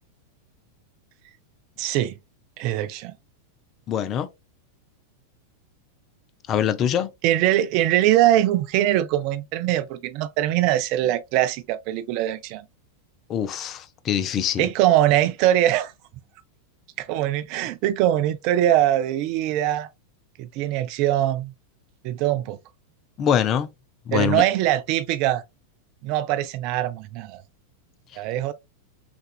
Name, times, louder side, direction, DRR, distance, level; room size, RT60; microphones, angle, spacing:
voice 1, 1.8-2.1 2.6-3.1 7.2-12.7 14.6-15.9 17.0-19.9 20.4-21.5 22.0-22.6 24.1-25.4 26.0-27.4 28.2-28.5, right 13 dB, 45° right, 0.4 m, -22 dB
voice 2, 3.9-4.3 6.5-7.1 13.3-14.7 23.2-23.7 24.1-24.4, left 9 dB, 30° left, 0.5 m, -23 dB
5.9 x 2.4 x 2.3 m
figure-of-eight pair, 90°, 0 cm